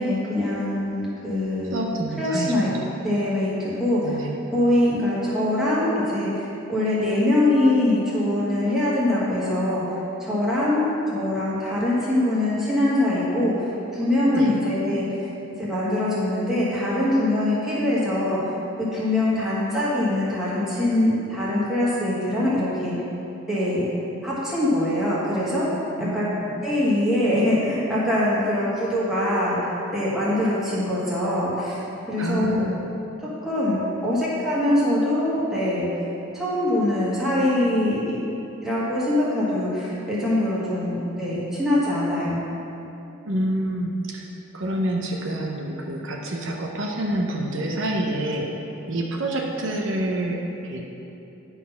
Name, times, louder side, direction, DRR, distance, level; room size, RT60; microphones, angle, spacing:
voice 1, 0.0-1.7 2.2-2.7 3.0-4.0 4.5-10.8 11.1-13.5 13.9-15.3 15.6-18.6 18.9-22.9 23.5-23.9 24.2-26.3 26.6-31.8 32.1-32.6 33.5-35.9 36.3-38.2 38.6-42.4, left 1 dB, ahead, -9 dB, 1.8 m, -23 dB
voice 2, 1.7-2.9 4.0-4.3 14.3-14.5 26.0-26.5 32.2-32.9 43.3-44.3 44.5-48.5 48.9-51.0, right 1 dB, 65° right, 0 dB, 0.8 m, -27 dB
11.0 x 4.1 x 5.6 m, 2.9 s
head